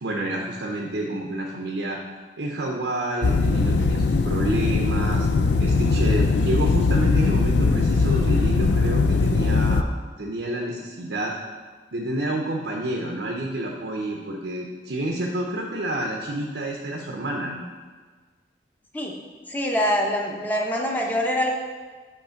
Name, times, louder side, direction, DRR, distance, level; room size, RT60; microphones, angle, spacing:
voice 1, 0.0-2.0 2.4-5.3 5.6-9.9 10.2-11.3 11.9-17.6, right 1 dB, 85° right, 0 dB, 0.8 m, -29 dB
sound 1, 3.2-9.8, left 3 dB, 70° left, 0.4 m, -20 dB
voice 2, 19.5-21.5, equal, 10° left, 0 dB, 0.8 m, -24 dB
8.2 x 3.3 x 5.8 m, 1.4 s
head